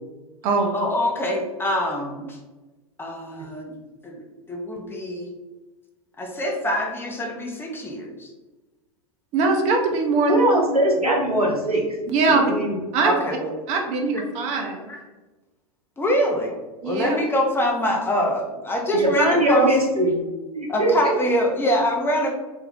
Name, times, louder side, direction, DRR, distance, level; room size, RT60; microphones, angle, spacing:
voice 1, 0.7-2.4 3.0-3.7 4.0-5.3 6.2-8.3 13.0-13.5 14.9-15.0 16.0-16.5 16.8-19.8 20.7-22.3, equal, 10° left, 0 dB, 0.5 m, -24 dB
voice 2, 9.3-10.4 12.1-12.5 12.9-13.1 13.7-14.9 16.8-17.2, right 3 dB, 40° right, 3 dB, 0.6 m, -21 dB
voice 3, 10.3-11.8 12.3-12.7 18.9-20.1 20.5-20.9, right 1 dB, 90° right, -1 dB, 0.7 m, -20 dB
2.6 x 2.2 x 3.4 m, 1.2 s
figure-of-eight pair, 90°, 19 cm